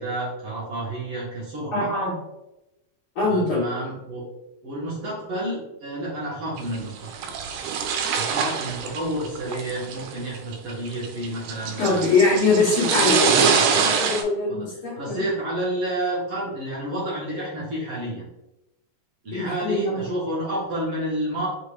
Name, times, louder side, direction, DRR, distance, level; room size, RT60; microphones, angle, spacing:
voice 1, 0.0-1.9 3.3-4.2 4.6-7.3 8.1-12.0 12.8-13.9 14.5-14.6 14.9-18.2 19.2-21.5, right 1 dB, 70° right, -7 dB, 1.3 m, -30 dB
voice 2, 1.7-2.1 3.1-3.6 11.8-13.4 13.7-15.2 19.3-20.0, left 3 dB, 90° left, -8 dB, 1.2 m, -22 dB
sound 1, 6.6-14.2, right 6 dB, 85° right, 2.6 m, -24 dB
5.7 x 2.4 x 3.3 m, 0.94 s
omnidirectional pair, 4.4 m